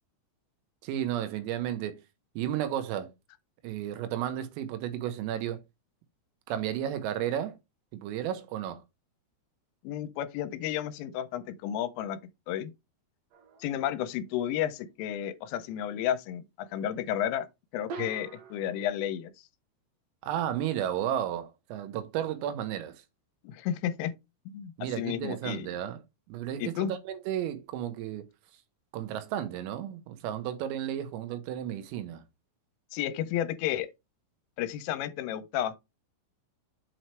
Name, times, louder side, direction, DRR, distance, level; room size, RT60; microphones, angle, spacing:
voice 1, 0.8-2.0 2.4-3.1 3.6-5.6 6.5-7.6 7.9-8.8 18.0-18.1 20.2-23.0 24.8-26.0 26.3-28.3 28.9-32.2, right 11 dB, 85° right, 3.6 m, -33 dB
voice 2, 9.8-12.2 12.5-12.7 13.6-16.4 16.7-17.5 17.7-19.3 23.4-24.1 24.5-25.7 26.6-26.9 32.9-33.9 34.6-35.7, left 11 dB, 90° left, 3.2 m, -32 dB
sound 1, 13.3-13.9 17.9-18.8, right 5 dB, 65° right, 2.2 m, -43 dB
7.8 x 3.1 x 4.4 m
omnidirectional pair, 5.8 m